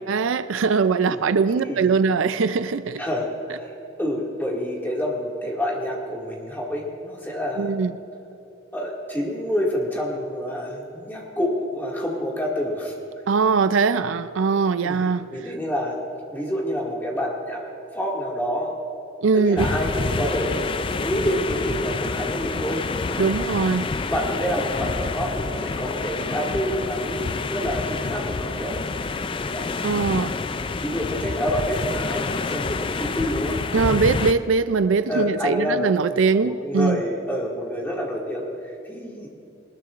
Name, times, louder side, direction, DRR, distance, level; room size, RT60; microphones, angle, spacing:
voice 1, 0.1-3.0 7.6-7.9 13.3-15.3 19.2-19.7 23.2-23.9 29.8-30.3 33.7-37.0, right 5 dB, 80° right, 13 dB, 0.4 m, -21 dB
voice 2, 1.5-1.9 3.0-3.7 4.0-7.7 8.7-12.9 14.8-15.0 15.3-16.0 16.3-17.6 17.9-18.8 19.3-22.8 23.1-23.6 24.1-28.8 29.5-29.8 30.8-33.6 35.1-39.3, equal, 10° left, -3 dB, 2.1 m, -28 dB
sound 1, 19.6-34.3, left 4 dB, 25° left, 0.3 m, -28 dB
20.0 x 19.5 x 2.5 m, 2.7 s
head